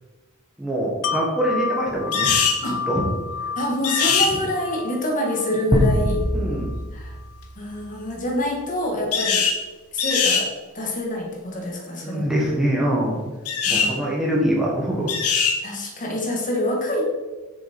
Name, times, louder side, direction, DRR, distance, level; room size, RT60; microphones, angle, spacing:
voice 1, 0.6-3.1 4.3-4.4 6.3-6.8 12.0-13.2 13.7-15.1, right 1 dB, 5° right, -5 dB, 1.4 m, -24 dB
Wind chime, 1.0-6.8 7.2-7.4, left 6 dB, 60° left, 0.4 m, -31 dB
sound 1, 2.1-2.6 3.8-4.3 9.1-9.6 10.0-10.5 13.5-13.9 15.1-15.6, left 6 dB, 85° left, 1.1 m, -21 dB
voice 2, 3.6-6.3 6.9-7.1 7.6-9.5 9.9-10.5 10.7-12.3 13.7-14.2 15.6-17.0, left 1 dB, 35° left, 0 dB, 1.6 m, -26 dB
sound 2, 5.7-8.3, equal, 20° right, 1.0 m, -24 dB
7.1 x 6.3 x 4.4 m, 1.2 s
head